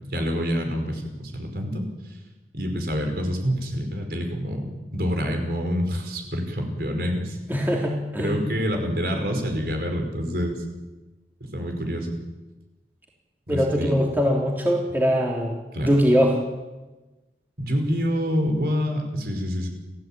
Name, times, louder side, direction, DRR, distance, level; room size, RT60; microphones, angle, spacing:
voice 1, 0.1-1.8 2.5-7.4 8.2-10.6 11.4-12.1 13.5-14.1 15.7-15.9 17.6-19.7, equal, 55° right, 4 dB, 5.4 m, -27 dB
voice 2, 7.5-8.4 13.5-16.4, equal, 10° right, -1 dB, 3.3 m, -22 dB
29.0 x 16.5 x 9.0 m, 1.2 s
head